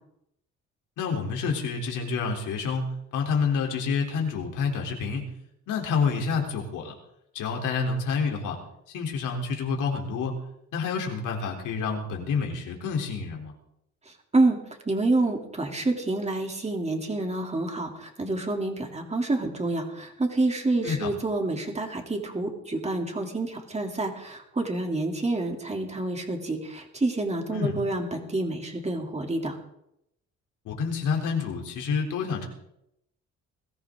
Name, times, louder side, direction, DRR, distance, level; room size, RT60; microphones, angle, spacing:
voice 1, 1.0-2.8 3.1-5.2 5.7-6.9 7.3-8.6 8.9-10.3 10.7-13.5 20.8-21.1 27.5-27.7 30.7-32.5, left 5 dB, 85° left, 1 dB, 3.8 m, -28 dB
voice 2, 14.8-29.6, right 2 dB, 20° right, 2 dB, 3.4 m, -28 dB
21.5 x 15.0 x 3.9 m, 0.80 s
cardioid pair, 90°, 30 cm